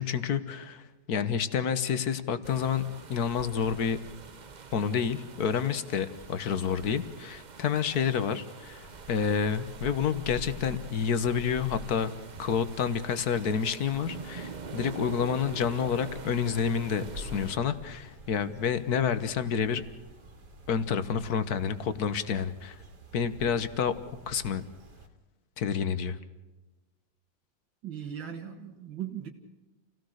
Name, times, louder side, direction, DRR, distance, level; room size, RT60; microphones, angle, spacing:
voice 1, 0.0-2.8 3.1-4.0 4.7-12.1 12.4-19.8 20.7-22.8 23.1-23.9 24.3-24.6 25.6-26.2, left 7 dB, 60° left, 12 dB, 1.7 m, -29 dB
sound 1, 2.4-17.6, right 5 dB, 40° right, 0.6 m, -45 dB
sound 2, 8.7-25.1, right 1 dB, 60° right, 2.9 m, -48 dB
voice 2, 27.8-29.3, right 9 dB, 85° right, 0 dB, 2.4 m, -38 dB
28.5 x 17.5 x 6.5 m, 1.1 s
omnidirectional pair, 2.0 m